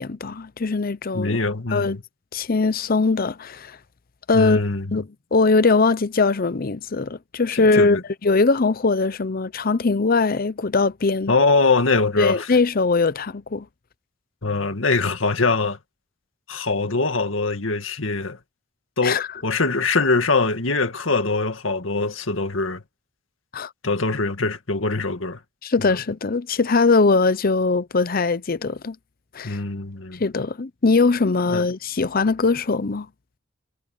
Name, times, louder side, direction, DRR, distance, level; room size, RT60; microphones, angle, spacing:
voice 1, 0.0-1.4 1.7-2.0 2.3-3.8 4.3-4.6 4.9-8.0 8.2-11.3 12.2-13.7 19.0-19.3 23.5-23.7 25.6-29.0 29.3-29.6 30.2-33.1, left 3 dB, 50° left, 0.7 m, -21 dB
voice 2, 1.1-2.0 4.3-5.0 7.5-8.0 11.3-12.5 14.4-15.8 16.5-18.4 19.0-22.8 23.8-25.4 25.8-26.0 29.4-30.2 31.5-31.6, left 3 dB, 85° left, 2.0 m, -23 dB
head